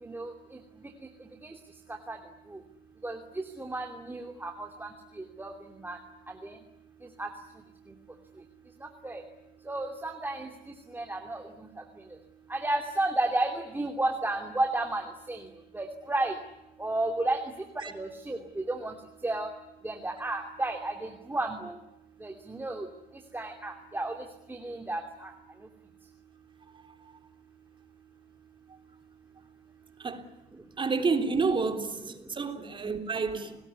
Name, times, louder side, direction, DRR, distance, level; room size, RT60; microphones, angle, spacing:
voice 1, 0.0-0.3 1.4-1.5 2.1-2.2 3.0-3.2 3.6-4.9 5.4-5.5 5.8-6.0 6.4-6.6 7.2-7.3 8.8-9.2 9.7-10.5 10.9-11.4 12.5-15.4 15.7-16.4 16.8-17.4 17.8-18.4 18.7-18.9 19.2-19.5 19.8-21.7 22.2-22.9 23.3-24.2 24.5-25.3, right 2 dB, 10° right, 2.8 m, -32 dB
voice 2, 26.7-27.2 30.0-30.3 30.8-33.6, right 4 dB, 30° right, 3.5 m, -30 dB
29.5 x 20.0 x 9.7 m
cardioid pair, 110°, 17 cm